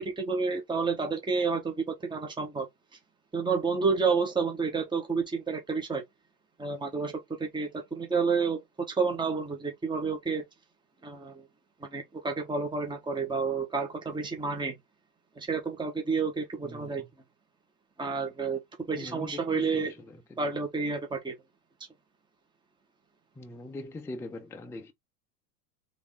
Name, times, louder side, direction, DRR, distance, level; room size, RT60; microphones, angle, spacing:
voice 1, 0.0-2.7 3.3-6.0 6.6-8.6 8.9-10.4 11.0-11.5 11.8-14.7 15.4-17.0 18.0-18.6 18.9-19.9 20.4-21.3, right 4 dB, 10° right, 1.3 m, -30 dB
voice 2, 16.6-17.1 18.9-19.9 20.4-20.5 23.4-24.9, left 2 dB, 5° left, 0.5 m, -41 dB
3.5 x 3.4 x 3.7 m
supercardioid pair, 120°, 46 cm